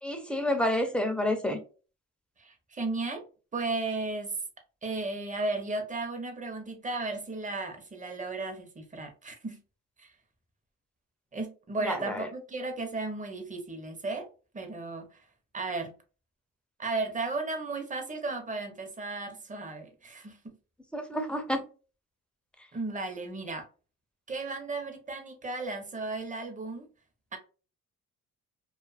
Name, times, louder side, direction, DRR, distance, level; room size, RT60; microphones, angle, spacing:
voice 1, 0.0-1.6 11.8-12.3 20.9-21.6, left 1 dB, 5° left, 0.6 m, -29 dB
voice 2, 2.4-3.2 3.5-4.4 4.8-9.6 10.0-10.1 11.3-14.3 14.5-15.2 15.5-15.9 16.8-20.5 22.7-23.7 24.3-26.9 27.3-27.4, right 3 dB, 25° right, 0.8 m, -35 dB
2.5 x 2.4 x 2.4 m
cardioid pair, 90°, 30 cm